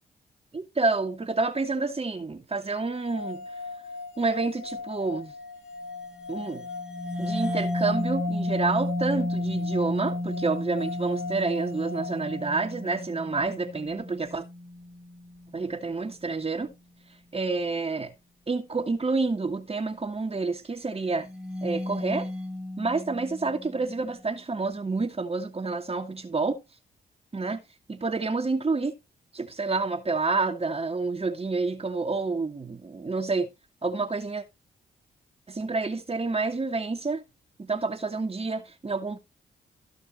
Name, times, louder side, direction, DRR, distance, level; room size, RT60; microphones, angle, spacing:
voice 1, 0.5-3.5 4.2-5.3 6.3-6.7 7.2-14.5 15.5-16.7 17.3-18.1 18.5-21.3 21.6-22.3 22.8-26.6 27.3-27.6 27.9-28.9 29.3-33.5 33.8-34.4 35.5-37.2 37.6-39.2, right 3 dB, 30° right, 2.4 m, -28 dB
sound 1, 2.8-12.9, left 4 dB, 90° left, 2.1 m, -40 dB
sound 2, 6.4-15.7 21.3-23.8, left 1 dB, 5° right, 4.4 m, -33 dB
15.0 x 6.2 x 3.2 m
supercardioid pair, 50°, 19 cm